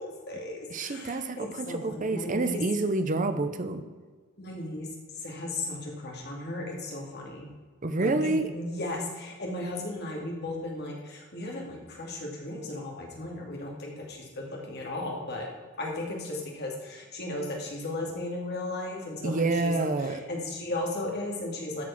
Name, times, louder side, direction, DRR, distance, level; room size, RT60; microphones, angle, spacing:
voice 1, 0.0-2.6 4.4-7.5 8.0-15.5 15.8-21.8, left 2 dB, 50° left, -1 dB, 2.3 m, -36 dB
voice 2, 0.7-3.8 7.8-8.5 19.2-20.2, right 2 dB, 40° right, 9 dB, 0.7 m, -28 dB
13.0 x 4.9 x 5.9 m, 1.4 s
head